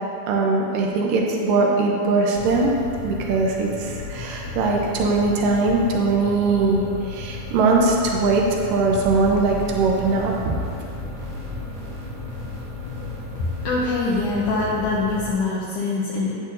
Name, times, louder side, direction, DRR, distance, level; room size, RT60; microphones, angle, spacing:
voice 1, 0.3-2.8 3.0-8.4 8.7-10.6, right 3 dB, 75° right, -1 dB, 2.0 m, -21 dB
sound 1, 2.3-15.3, left 3 dB, 60° left, 2.6 m, -35 dB
sound 2, 8.9-13.7, right 4 dB, 55° right, 2.3 m, -38 dB
voice 2, 13.6-16.3, left 3 dB, 80° left, -6 dB, 1.8 m, -23 dB
10.5 x 8.3 x 2.6 m, 2.5 s
omnidirectional pair, 4.7 m